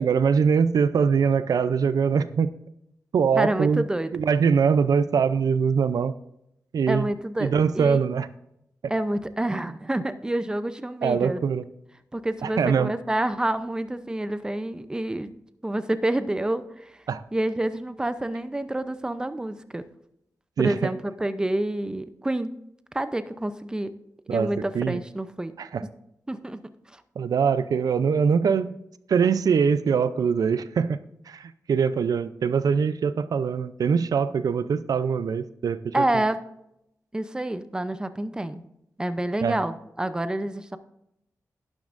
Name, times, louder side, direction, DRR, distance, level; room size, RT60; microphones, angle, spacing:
voice 1, 0.0-2.5 3.1-3.8 4.1-6.1 6.7-7.1 7.4-8.3 11.0-11.7 12.4-12.9 17.1-17.2 20.6-20.9 24.3-25.0 25.6-25.8 27.2-28.7 29.1-31.0 31.3-36.0 39.4-39.5, right 6 dB, 85° right, 14 dB, 0.5 m, -23 dB
voice 2, 3.4-4.1 6.9-7.5 7.7-8.0 8.9-11.4 12.1-15.3 15.6-17.0 17.3-19.8 20.6-22.5 22.9-23.9 24.3-25.5 26.3-26.6 26.9-27.0 35.9-36.4 37.1-38.7 39.0-40.8, right 1 dB, 15° right, 12 dB, 0.6 m, -28 dB
11.5 x 10.5 x 2.5 m, 0.80 s
wide cardioid pair, 110°, 6 cm